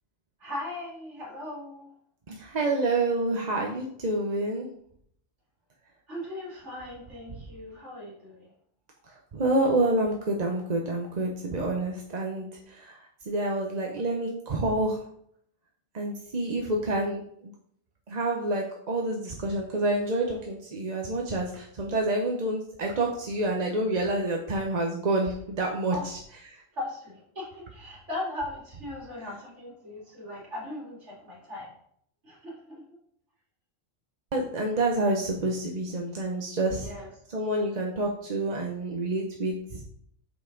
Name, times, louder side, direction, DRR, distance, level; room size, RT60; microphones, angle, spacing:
voice 1, 0.4-1.9 6.1-8.5 25.9-26.1 26.7-31.7 32.2-32.8 36.6-37.1, left 1 dB, 60° right, -4 dB, 2.7 m, -38 dB
voice 2, 2.3-4.7 9.1-13.0 13.3-15.0 15.9-17.2 18.1-26.2 26.5-26.6 34.3-36.9 37.3-39.8, right 2 dB, 40° right, 0 dB, 0.8 m, -28 dB
7.1 x 5.6 x 3.8 m, 0.67 s
omnidirectional pair, 1.3 m